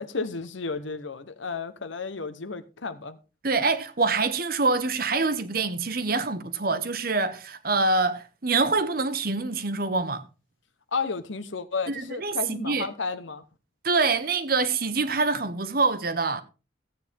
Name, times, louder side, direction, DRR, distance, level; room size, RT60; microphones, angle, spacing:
voice 1, 0.0-3.2 10.9-13.4, left 4 dB, 75° left, 1.0 m, -32 dB
voice 2, 3.4-10.2 11.9-12.9 13.8-16.4, right 3 dB, 50° right, 1.1 m, -25 dB
15.0 x 8.8 x 3.5 m
head